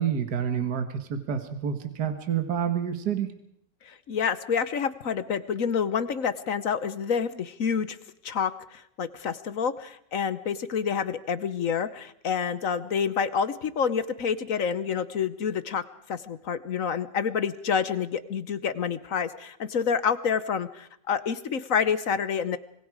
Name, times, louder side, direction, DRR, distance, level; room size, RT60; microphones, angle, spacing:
voice 1, 0.0-3.3, right 8 dB, 65° right, 7 dB, 2.1 m, -28 dB
voice 2, 3.9-8.0 8.2-15.8 16.1-22.6, left 6 dB, 55° left, 13 dB, 1.2 m, -28 dB
26.0 x 21.0 x 4.9 m, 0.70 s
omnidirectional pair, 1.9 m